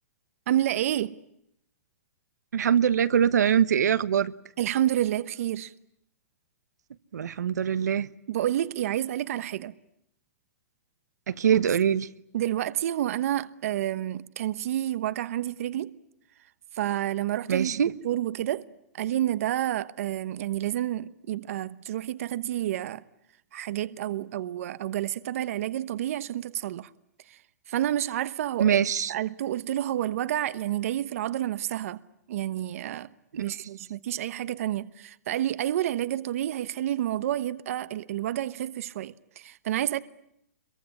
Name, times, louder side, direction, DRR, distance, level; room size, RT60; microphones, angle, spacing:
voice 1, 0.5-1.2 4.6-5.7 8.3-9.7 11.5-11.6 12.3-15.9 16.7-17.8 18.0-18.7 18.9-23.0 23.5-26.9 27.3-27.4 27.7-28.8 29.1-32.0 32.3-33.1 33.3-40.0, right 12 dB, 55° right, 1.0 m, -29 dB
voice 2, 2.5-4.3 7.1-8.1 11.3-12.1 17.5-17.9 28.6-29.1 33.3-33.4, right 8 dB, 90° right, 1.1 m, -23 dB
25.5 x 23.0 x 9.8 m
hypercardioid pair, 155°, 9 cm